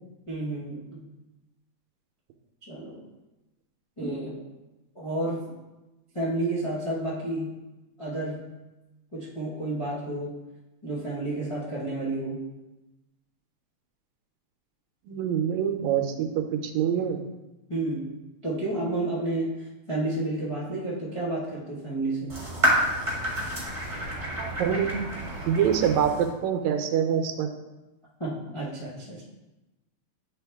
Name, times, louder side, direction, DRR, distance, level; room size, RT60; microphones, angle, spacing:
voice 1, 0.3-1.0 2.6-3.0 4.0-4.4 4.9-5.5 6.1-7.6 8.0-8.5 9.1-10.3 10.8-12.4 17.7-18.1 18.4-19.5 19.9-22.3 28.2-29.2, right 2 dB, 40° left, -7 dB, 0.4 m, -31 dB
voice 2, 15.1-17.2 24.4-25.0 25.5-27.5, right 8 dB, 80° right, 5 dB, 1.9 m, -25 dB
sound 1, 22.3-26.3, equal, 15° right, 1.4 m, -29 dB
9.6 x 4.1 x 3.5 m, 1.0 s
omnidirectional pair, 3.3 m